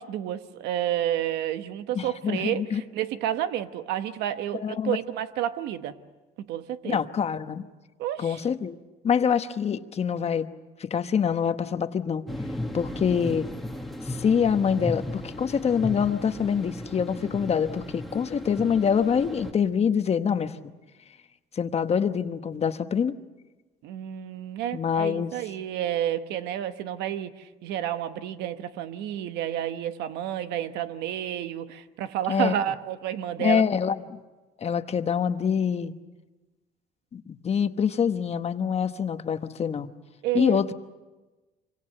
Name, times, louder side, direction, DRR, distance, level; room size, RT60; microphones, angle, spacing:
voice 1, 0.0-6.0 6.4-7.0 8.0-8.4 23.8-33.6 40.2-40.6, right 11 dB, 90° right, 11 dB, 1.1 m, -30 dB
voice 2, 1.9-2.8 4.5-5.0 6.8-7.7 8.2-8.8 9.0-10.5 10.8-12.2 12.7-13.5 14.0-20.7 21.6-23.1 24.7-25.3 32.3-32.5 33.4-34.2 34.6-35.9 37.1-39.9 40.3-40.7, left 7 dB, 40° left, 9 dB, 1.1 m, -25 dB
sound 1, 12.3-19.5, left 1 dB, ahead, 1.8 m, -35 dB
25.5 x 25.5 x 6.7 m, 1.2 s
cardioid pair, 110°, 17 cm